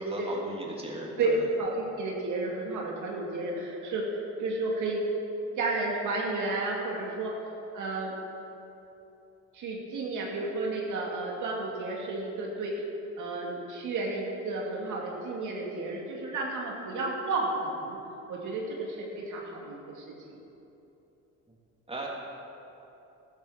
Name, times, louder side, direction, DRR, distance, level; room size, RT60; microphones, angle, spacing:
voice 1, 0.0-1.4 21.9-22.1, right 1 dB, 20° right, -3 dB, 3.3 m, -37 dB
voice 2, 1.6-5.0 5.6-7.3 7.7-8.1 9.5-12.9 13.2-18.0 18.3-20.0 20.3-20.4, right 3 dB, 80° right, -2 dB, 2.4 m, -32 dB
14.0 x 13.5 x 5.0 m, 2.9 s
cardioid pair, 90°, 30 cm